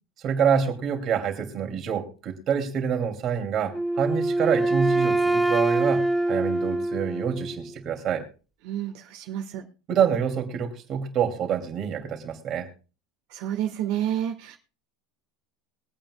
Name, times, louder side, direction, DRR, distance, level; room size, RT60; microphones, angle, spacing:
voice 1, 0.2-8.2 9.9-12.7, right 7 dB, 35° right, 4 dB, 2.8 m, -26 dB
Wind instrument woodwind instrument, 3.7-7.7, right 2 dB, ahead, 0.9 m, -24 dB
voice 2, 8.6-9.6 13.3-14.6, right 11 dB, 65° right, 3 dB, 1.7 m, -29 dB
22.5 x 8.9 x 2.4 m, 0.34 s
supercardioid pair, 155°, 0 cm